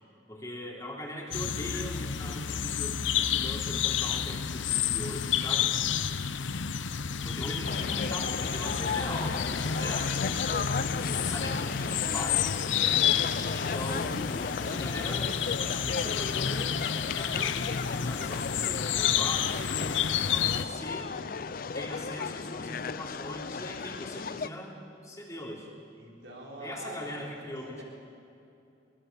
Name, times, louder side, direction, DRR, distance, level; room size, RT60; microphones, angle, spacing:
voice 1, 0.3-5.7 7.2-9.4 9.8-10.6 11.1-12.6 13.5-15.4 15.9-21.1 21.7-24.7 25.0-25.7 26.6-27.8, left 1 dB, 20° left, -2 dB, 3.5 m, -40 dB
sound 1, 1.3-20.6, left 8 dB, 90° left, 0.8 m, -30 dB
sound 2, 7.6-24.5, left 5 dB, 50° left, 0.5 m, -35 dB
voice 2, 7.6-8.7 9.6-10.5 26.0-27.8, right 1 dB, 80° right, -2 dB, 5.1 m, -47 dB
23.5 x 21.5 x 7.0 m, 2.7 s
head